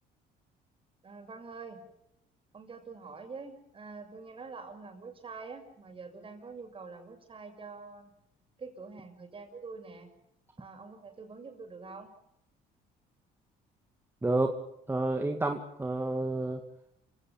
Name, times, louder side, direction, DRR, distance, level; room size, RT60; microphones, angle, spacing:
voice 1, 1.0-1.8 2.5-8.1 8.6-10.1 10.6-12.1, right 4 dB, 30° right, 5 dB, 6.8 m, -45 dB
voice 2, 14.2-14.6 14.9-16.6, right 2 dB, 15° right, 4 dB, 2.3 m, -29 dB
28.5 x 17.5 x 7.4 m, 0.77 s
cardioid pair, 110°, 17 cm